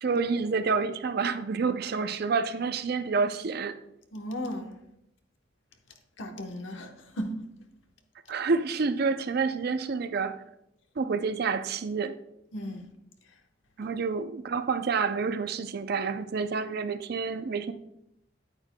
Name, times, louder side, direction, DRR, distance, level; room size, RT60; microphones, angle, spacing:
voice 1, 0.0-3.8 8.3-10.4 11.0-12.1 13.8-17.7, right 4 dB, 55° right, 0.5 m, -28 dB
voice 2, 4.1-4.7 6.2-7.3 12.5-12.9 13.8-13.9, equal, 90° left, 1.0 m, -36 dB
9.0 x 8.8 x 2.2 m
head